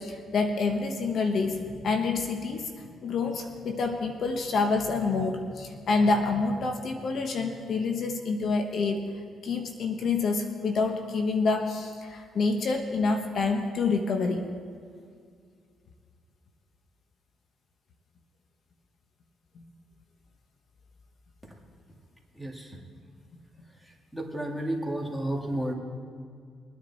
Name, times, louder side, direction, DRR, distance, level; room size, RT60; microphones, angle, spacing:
voice 1, 0.0-2.7 3.0-9.0 9.4-14.4, left 4 dB, 60° left, 4 dB, 1.2 m, -27 dB
voice 2, 24.1-25.7, right 1 dB, 5° left, 1 dB, 2.3 m, -31 dB
22.0 x 9.6 x 4.2 m, 2.2 s
cardioid pair, 90°, 0 cm